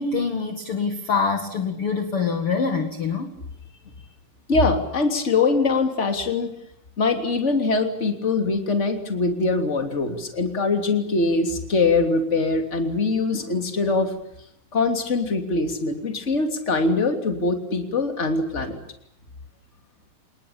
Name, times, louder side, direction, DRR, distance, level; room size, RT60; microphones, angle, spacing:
voice 1, 0.0-3.3, left 5 dB, 45° left, 6 dB, 2.5 m, -25 dB
voice 2, 4.5-6.5 7.0-14.1 14.7-18.8, left 3 dB, 20° left, 6 dB, 3.0 m, -23 dB
28.5 x 20.0 x 8.8 m, 0.73 s
omnidirectional pair, 4.2 m